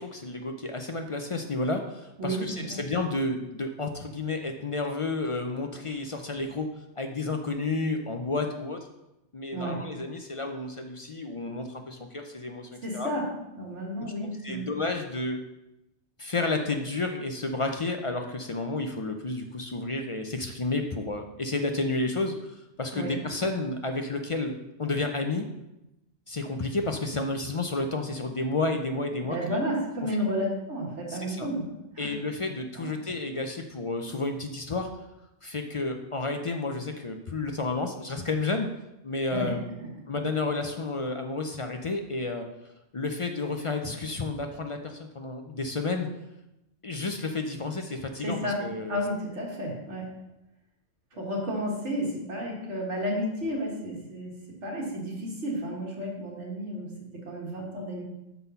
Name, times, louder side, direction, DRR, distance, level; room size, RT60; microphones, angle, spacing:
voice 1, 0.0-6.7 7.0-8.9 9.3-13.1 14.0-15.4 16.2-24.5 24.8-25.5 26.3-29.6 31.1-31.5 32.0-34.9 35.4-38.7 39.0-39.6 40.1-42.5 42.9-46.1 46.8-49.0 51.1-51.3, left 3 dB, 40° left, 4 dB, 0.5 m, -31 dB
voice 2, 2.2-2.8 9.5-9.8 12.8-13.3 13.5-14.7 22.9-23.1 29.2-32.1 32.8-32.9 39.3-39.5 48.2-48.6 48.9-50.1 51.2-54.4 54.6-58.0, equal, 90° right, -2 dB, 2.1 m, -32 dB
6.1 x 5.4 x 5.5 m, 0.91 s
omnidirectional pair, 1.2 m